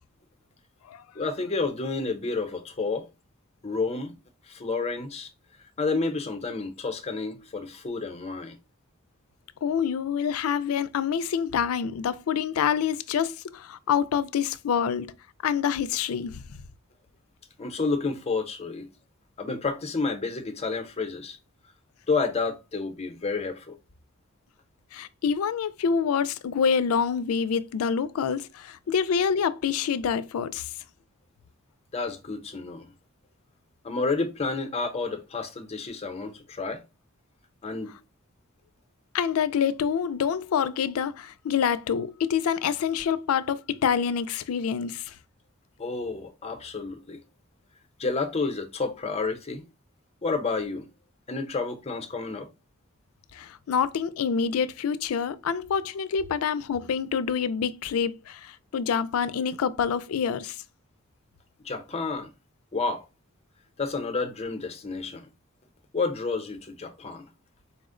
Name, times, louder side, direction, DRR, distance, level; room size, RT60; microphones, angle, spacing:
voice 1, 1.1-3.1 3.6-4.1 4.5-5.3 5.8-8.6 17.6-18.9 19.4-21.4 22.1-23.8 31.9-32.8 33.8-36.8 37.6-37.9 45.8-47.2 48.0-49.6 50.2-50.9 51.3-52.5 61.6-62.3 62.7-63.1 63.8-65.3 65.9-67.3, left 4 dB, 30° left, 0.6 m, -30 dB
voice 2, 9.6-15.1 15.4-16.6 24.9-30.7 39.1-45.2 53.3-60.6, left 7 dB, 90° left, 0.4 m, -27 dB
4.2 x 2.0 x 3.7 m
head